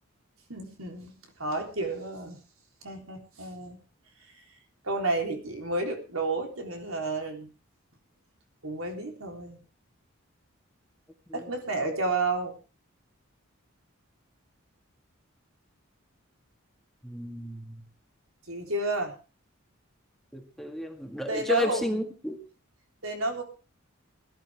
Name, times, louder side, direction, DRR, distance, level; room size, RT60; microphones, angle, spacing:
voice 1, 0.5-2.4 2.8-3.8 4.8-7.5 8.6-9.6 11.3-12.5 18.5-19.1 21.3-22.0 23.0-23.4, right 2 dB, 80° right, 3 dB, 3.7 m, -31 dB
voice 2, 17.0-17.8 20.3-22.4, left 2 dB, ahead, 3 dB, 1.8 m, -32 dB
20.5 x 12.0 x 3.6 m, 0.33 s
head